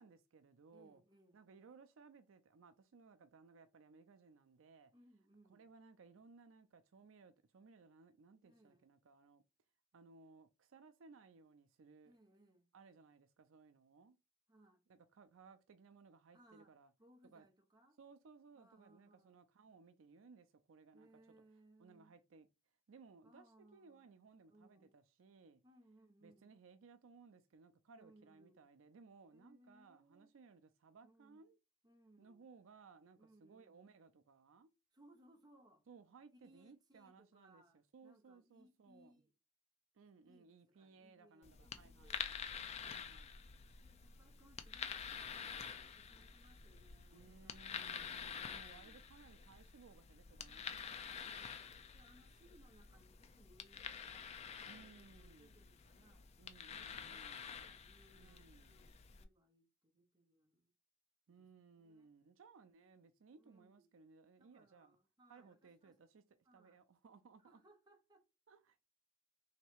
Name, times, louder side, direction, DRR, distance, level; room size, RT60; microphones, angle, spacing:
voice 1, 0.0-1.0 1.3-4.9 5.5-9.4 9.9-12.2 12.7-14.2 14.9-16.9 17.3-17.5 18.0-21.1 21.8-22.5 22.9-25.6 26.2-31.6 32.2-34.7 35.9-37.6 37.9-39.2 39.9-42.4 42.8-43.3 47.1-51.3 54.6-55.6 56.4-57.5 58.1-58.8 61.3-65.0 65.3-67.6 68.5-68.8, right 4 dB, 80° right, 0.4 m, -62 dB
voice 2, 0.7-1.4 4.9-5.7 8.4-8.9 12.0-12.7 14.5-14.8 16.3-16.7 17.0-18.0 18.6-19.4 20.9-22.1 23.2-24.2 24.5-25.0 25.6-26.5 27.9-28.7 29.3-30.3 31.0-31.4 31.8-32.4 33.2-33.8 34.9-35.8 36.3-39.3 40.2-42.3 42.8-43.2 43.8-45.0 45.3-49.1 50.5-54.5 54.8-56.3 56.7-60.7 61.3-61.5 61.7-62.1 63.4-63.9 64.4-66.0 66.4-66.8 67.4-68.3, right 1 dB, 20° right, 0.8 m, -68 dB
sound 1, 41.4-59.2, left 7 dB, 30° left, 0.4 m, -49 dB
3.1 x 2.9 x 4.5 m
head